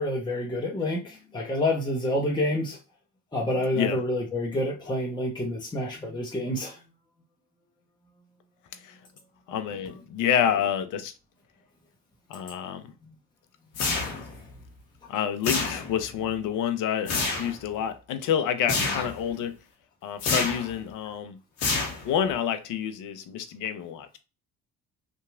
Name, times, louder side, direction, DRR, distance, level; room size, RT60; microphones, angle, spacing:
voice 1, 0.0-2.8 3.3-6.8 13.0-13.1 14.2-14.4, left 1 dB, 10° left, 0.8 m, -28 dB
voice 2, 9.5-11.1 12.3-12.8 15.1-19.5 20.0-21.4 22.0-24.2, left 9 dB, 50° left, 0.6 m, -28 dB
sound 1, 13.7-14.4 15.4-16.1 17.1-17.6 18.7-19.2 20.2-20.7 21.6-22.3, left 3 dB, 80° left, 0.9 m, -28 dB
2.8 x 2.3 x 2.4 m
hypercardioid pair, 50°, 41 cm